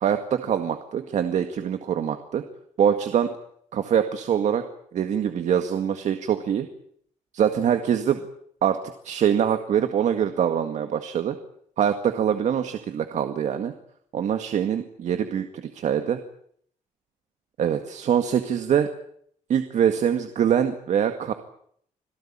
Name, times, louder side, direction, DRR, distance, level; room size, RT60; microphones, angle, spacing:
voice 1, 0.0-2.4 2.8-3.3 3.7-4.6 4.9-6.7 7.3-8.3 8.6-8.8 9.0-11.4 11.8-13.7 14.1-16.2 17.6-18.9 19.5-21.3, right 8 dB, 65° right, 7 dB, 2.0 m, -24 dB
27.0 x 18.0 x 8.8 m, 0.67 s
cardioid pair, 110°, 13 cm